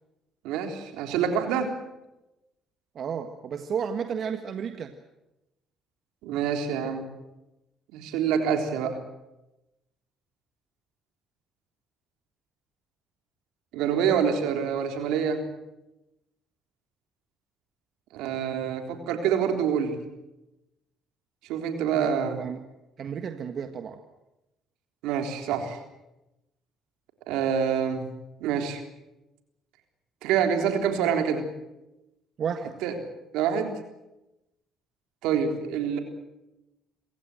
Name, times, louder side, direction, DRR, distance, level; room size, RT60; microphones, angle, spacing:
voice 1, 0.4-1.7 6.2-7.1 7.9-9.0 13.7-15.4 18.1-20.0 21.5-22.4 25.0-25.8 27.3-28.1 28.4-28.8 30.2-31.5 32.8-33.0 33.3-33.7 35.2-36.0, right 7 dB, 85° right, 5 dB, 3.6 m, -26 dB
voice 2, 2.9-4.9 21.9-22.6 23.0-24.0 32.4-32.8, right 7 dB, 55° right, 7 dB, 1.6 m, -32 dB
27.0 x 15.5 x 9.1 m, 0.96 s
supercardioid pair, 75°, 0 cm